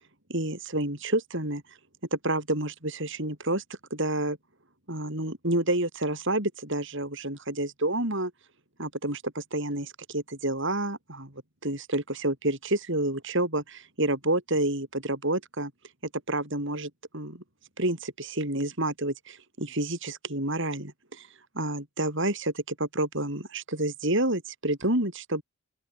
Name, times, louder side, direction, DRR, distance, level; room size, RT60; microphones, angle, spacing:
voice 1, 0.3-1.6 2.1-3.6 3.9-4.4 4.9-8.3 8.8-11.3 11.6-15.7 16.3-17.4 17.8-21.3 21.5-25.4, right 1 dB, 55° right, 6.0 m, -29 dB
open air
head